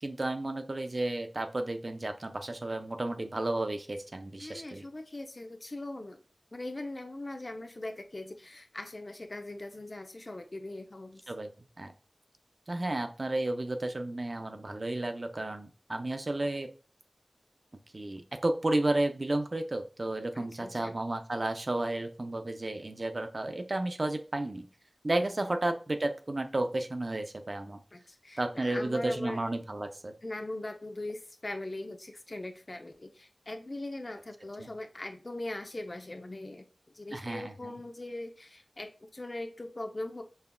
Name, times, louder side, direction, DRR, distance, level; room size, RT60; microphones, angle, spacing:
voice 1, 0.0-4.8 11.3-11.5 11.8-11.9 12.7-16.7 17.9-24.7 25.0-27.8 28.4-30.1 34.6-34.7 37.1-37.8, right 2 dB, 50° right, 7 dB, 0.5 m, -32 dB
voice 2, 4.4-6.2 6.5-11.3 20.3-20.9 25.1-25.5 27.9-29.4 30.2-36.7 36.9-40.2, left 2 dB, 45° left, 5 dB, 0.6 m, -41 dB
5.5 x 2.4 x 2.2 m, 0.36 s
wide cardioid pair, 55°, 0 cm